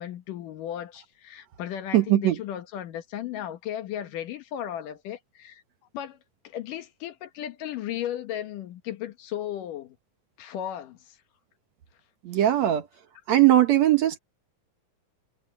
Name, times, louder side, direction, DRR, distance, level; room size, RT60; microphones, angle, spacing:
voice 1, 0.0-5.6 5.9-6.2 6.4-10.0 10.4-11.2, left 11 dB, 70° left, 2.9 m, -35 dB
voice 2, 1.9-2.4 12.2-12.9 13.3-14.2, right 13 dB, 65° right, 2.1 m, -20 dB
omnidirectional pair, 4.0 m